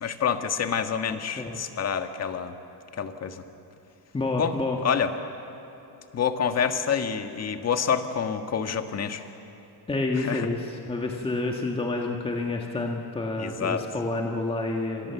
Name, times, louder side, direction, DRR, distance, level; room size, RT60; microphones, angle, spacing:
voice 1, 0.0-2.5 3.0-3.4 4.3-4.5 4.8-5.1 6.1-9.3 10.2-10.5 13.4-13.8, left 7 dB, 35° left, 7 dB, 1.7 m, -27 dB
voice 2, 4.1-4.8 9.9-15.1, left 2 dB, 15° left, 1 dB, 1.8 m, -29 dB
29.0 x 26.0 x 7.2 m, 2.9 s
cardioid pair, 135°, 42 cm